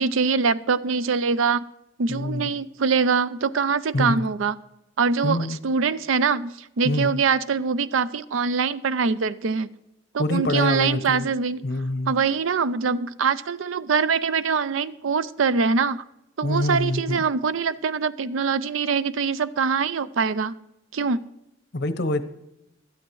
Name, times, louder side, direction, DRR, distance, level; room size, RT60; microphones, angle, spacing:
voice 1, 0.0-1.6 2.0-4.6 5.0-9.7 10.1-11.7 12.1-16.0 16.4-20.6 20.9-21.2, right 5 dB, 85° right, 16 dB, 0.5 m, -23 dB
voice 2, 2.1-2.5 3.9-4.2 5.2-5.6 6.8-7.2 10.2-11.3 11.6-12.1 16.4-17.2 21.7-22.2, left 2 dB, 60° left, 11 dB, 0.9 m, -25 dB
16.5 x 12.0 x 3.1 m, 0.88 s
head